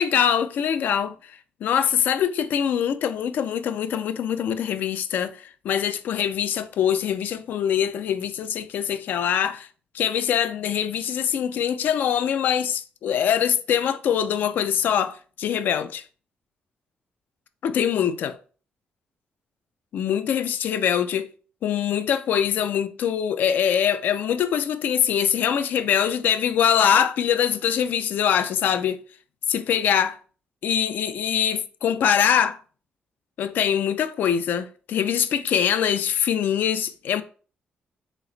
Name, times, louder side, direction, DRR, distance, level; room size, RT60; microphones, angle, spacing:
voice 1, 0.0-9.7 9.9-16.0 17.6-18.4 19.9-21.3 21.6-29.0 29.5-30.1 30.6-32.6 33.4-37.2, left 9 dB, 70° left, 0.3 m, -23 dB
3.3 x 2.9 x 3.8 m
cardioid pair, 145°, 3 cm